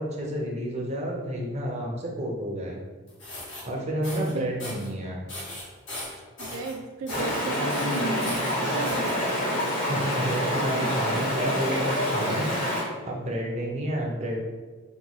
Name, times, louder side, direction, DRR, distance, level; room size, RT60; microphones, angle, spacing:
voice 1, 0.0-2.8 3.7-5.2 9.9-12.5 13.0-14.4, equal, 35° right, -1 dB, 0.5 m, -30 dB
sound 1, 3.1-3.6 4.0-4.3 4.6-4.9 5.3-6.7 7.1-7.4 7.7-9.1, left 1 dB, 65° left, 1.2 m, -38 dB
voice 2, 6.4-9.2, right 3 dB, 85° right, 3 dB, 0.3 m, -35 dB
Stream, 7.1-12.8, equal, 40° left, 1.0 m, -27 dB
2.9 x 2.3 x 3.8 m, 1.3 s
head